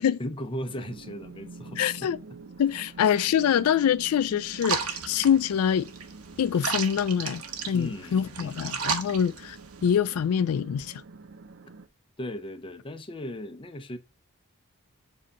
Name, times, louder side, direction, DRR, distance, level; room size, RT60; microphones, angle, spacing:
voice 1, 0.2-2.4 7.7-8.7 9.0-9.2 12.2-14.0, equal, 25° left, 0.6 m, -37 dB
sound 1, 0.7-11.9, right 3 dB, 55° right, 0.5 m, -47 dB
voice 2, 1.8-2.2 2.6-5.9 6.4-9.6 9.8-10.9, left 8 dB, 80° left, 0.3 m, -25 dB
sound 2, 4.6-10.0, right 6 dB, 90° right, 1.1 m, -34 dB
7.4 x 2.8 x 5.3 m
head